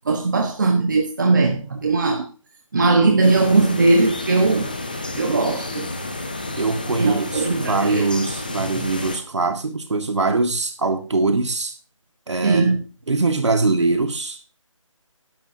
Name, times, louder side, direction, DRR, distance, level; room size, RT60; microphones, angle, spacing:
voice 1, 0.1-2.3 2.7-4.7 5.1-5.9 7.0-8.0 8.6-8.8 12.4-12.8, right 3 dB, 35° right, 1.2 m, -19 dB
sound 1, 3.2-9.2, left 2 dB, 15° left, 0.5 m, -30 dB
voice 2, 6.6-11.7 12.3-12.7 13.1-14.4, right 3 dB, 55° right, 1.7 m, -22 dB
13.5 x 10.5 x 2.8 m
figure-of-eight pair, 175°, 17 cm